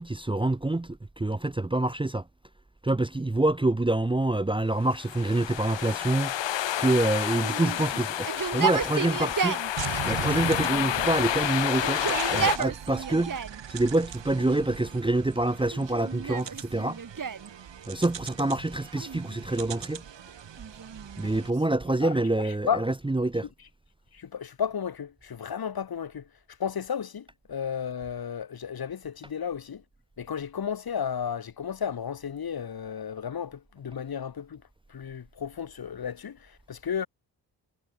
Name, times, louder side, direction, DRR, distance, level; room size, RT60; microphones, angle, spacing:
voice 1, 0.0-2.2 2.8-6.3 6.8-9.6 10.0-13.4 13.7-17.0 17.9-20.0 21.2-23.5, right 2 dB, 10° right, 0.8 m, -26 dB
sound 1, 4.9-12.6, left 11 dB, 80° left, 1.1 m, -30 dB
Yell, 7.3-9.7 10.6-11.3 11.7-13.6 14.3-15.0 15.7-17.5 18.9-19.7 20.6-22.3, right 6 dB, 45° right, 2.1 m, -33 dB
sound 2, 9.8-21.5, right 8 dB, 75° right, 3.6 m, -39 dB
voice 2, 22.0-22.8 24.1-26.3 26.6-29.8 30.2-34.6 34.9-37.1, left 7 dB, 55° left, 1.7 m, -33 dB
cardioid pair, 85°, 43 cm